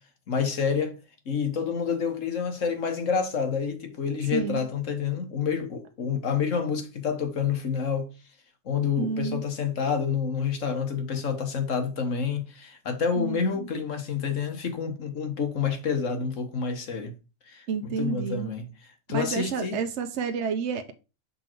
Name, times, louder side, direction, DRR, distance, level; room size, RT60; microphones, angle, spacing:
voice 1, 0.3-1.0 1.2-8.1 8.6-17.2 17.5-18.7 19.1-19.8, left 6 dB, 70° left, 1.6 m, -28 dB
voice 2, 4.3-4.6 8.9-9.4 13.1-13.7 17.7-18.5 19.1-20.9, right 5 dB, 65° right, 1.0 m, -30 dB
6.6 x 3.9 x 4.5 m
omnidirectional pair, 1.4 m